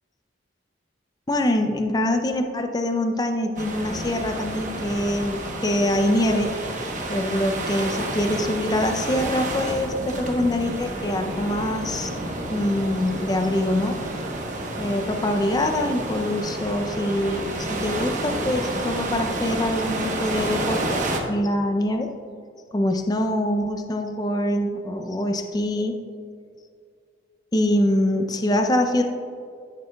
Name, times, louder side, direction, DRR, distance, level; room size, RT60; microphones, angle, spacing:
voice 1, 1.3-6.5 7.1-12.1 12.5-14.0 14.8-21.0 21.3-22.1 22.7-26.0 27.5-29.0, left 1 dB, 20° left, 5 dB, 0.4 m, -24 dB
sound 1, 3.6-21.2, right 1 dB, 40° right, 1.0 m, -30 dB
13.0 x 6.6 x 2.3 m, 2.3 s
head